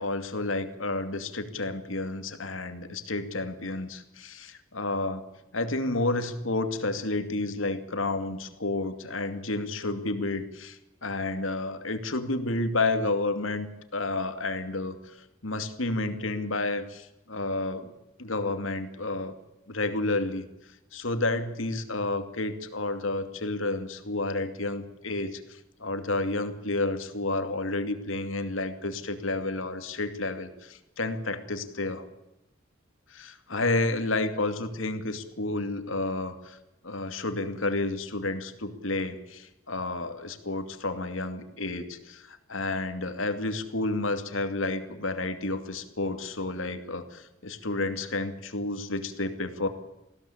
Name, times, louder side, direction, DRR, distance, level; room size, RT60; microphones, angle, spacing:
voice 1, 0.0-5.2 5.5-13.7 13.9-17.9 18.2-19.3 19.7-20.4 20.9-32.1 33.1-36.6 36.8-49.7, left 2 dB, 80° left, 8 dB, 2.6 m, -30 dB
21.0 x 16.5 x 8.7 m, 0.90 s
head